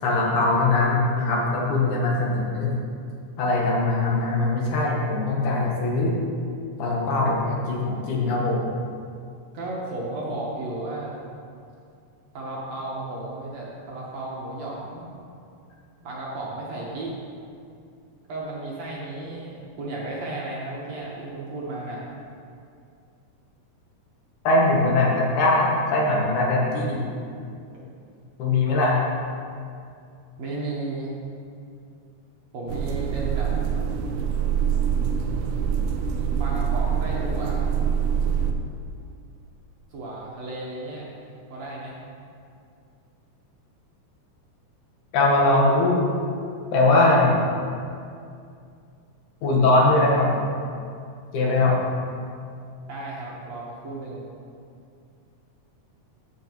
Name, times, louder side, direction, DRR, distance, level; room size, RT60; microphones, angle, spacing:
voice 1, 0.0-2.8 3.4-6.2 6.8-8.7 24.4-27.1 28.4-29.0 45.1-46.0 46.7-47.4 49.4-50.3 51.3-51.8, left 2 dB, 70° left, -2 dB, 2.5 m, -21 dB
voice 2, 9.5-11.1 12.3-15.1 16.0-17.1 18.3-22.1 27.7-27.8 30.4-31.2 32.5-33.5 36.4-37.7 39.9-41.1 41.5-42.0 52.9-54.3, right 2 dB, 60° right, -4 dB, 2.2 m, -34 dB
sound 1, 32.7-38.5, right 7 dB, 80° right, 2.1 m, -25 dB
14.0 x 5.9 x 3.1 m, 2.4 s
omnidirectional pair, 3.8 m